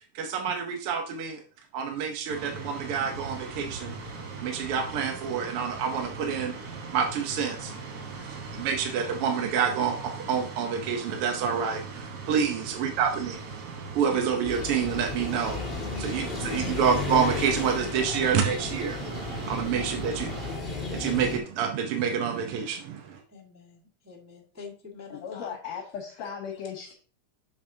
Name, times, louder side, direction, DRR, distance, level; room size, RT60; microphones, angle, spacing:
voice 1, 0.1-1.4 1.7-3.9 4.4-7.7 8.6-13.4 13.9-15.6 16.0-20.3 20.9-23.2, right 7 dB, 70° right, 4 dB, 1.4 m, -28 dB
sound 1, 2.3-20.6, right 4 dB, 85° right, 0.8 m, -40 dB
voice 2, 7.5-8.3 12.4-12.6 15.8-16.3 19.8-20.3 23.3-25.5 26.2-26.3, left 5 dB, 15° right, -4 dB, 0.6 m, -48 dB
sound 2, 14.4-21.4, left 3 dB, 25° left, 1.3 m, -34 dB
voice 3, 25.1-26.9, left 7 dB, 70° left, 0 dB, 2.2 m, -37 dB
7.8 x 7.0 x 2.7 m, 0.41 s
omnidirectional pair, 3.3 m